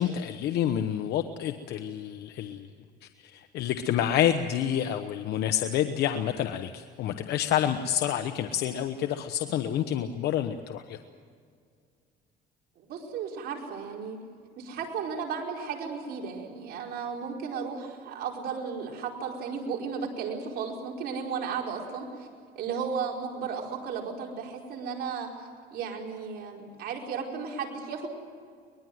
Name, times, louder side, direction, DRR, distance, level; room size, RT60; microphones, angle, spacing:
voice 1, 0.0-2.7 3.2-11.0, left 10 dB, 75° left, 8 dB, 1.1 m, -28 dB
voice 2, 12.8-14.2 14.6-22.3 22.5-25.3 25.7-28.1, right 6 dB, 70° right, 0 dB, 5.0 m, -34 dB
23.5 x 21.0 x 7.9 m, 2.2 s
cardioid pair, 110°, 17 cm